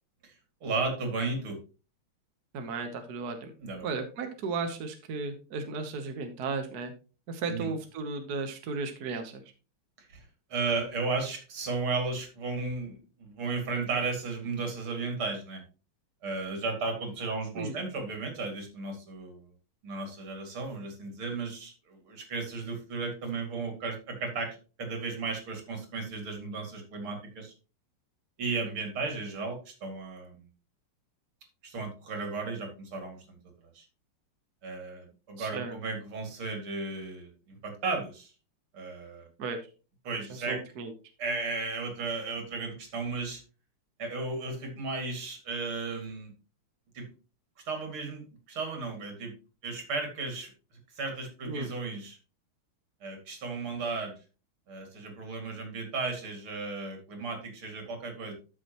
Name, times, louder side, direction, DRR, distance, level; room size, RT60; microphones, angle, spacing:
voice 1, 0.6-1.6 3.6-3.9 7.5-7.7 10.0-15.6 16.2-19.5 19.8-27.5 28.4-30.4 31.6-33.4 33.7-33.8 34.6-38.3 38.7-39.3 40.0-40.6 41.2-43.4 44.0-46.3 46.9-47.1 47.7-49.3 49.6-50.5 50.9-52.2 53.0-54.1 54.7-58.3, right 3 dB, 70° right, 3 dB, 3.3 m, -34 dB
voice 2, 2.5-3.5 3.8-6.9 7.3-9.4 17.6-17.8 35.4-35.7 39.4-39.6 40.5-40.9 51.5-51.7, right 4 dB, 55° right, 6 dB, 1.4 m, -35 dB
13.0 x 6.3 x 3.0 m, 0.33 s
omnidirectional pair, 2.4 m